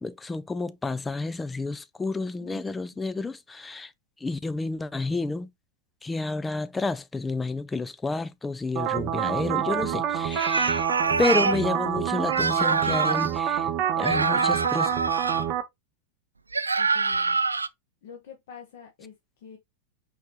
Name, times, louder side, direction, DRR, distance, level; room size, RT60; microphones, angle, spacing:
voice 1, 0.0-3.9 4.2-5.5 6.0-10.8 11.2-13.7 14.0-14.9, left 3 dB, 10° left, 0.4 m, -30 dB
sound 1, 8.8-15.6, right 10 dB, 40° right, 0.7 m, -27 dB
sound 2, 10.3-11.6 12.3-13.3 14.0-15.4 16.5-17.7, right 4 dB, 80° right, 0.3 m, -25 dB
voice 2, 16.6-17.4 18.0-19.6, left 7 dB, 55° left, 1.0 m, -47 dB
4.7 x 3.3 x 2.8 m
figure-of-eight pair, 90°, 0 cm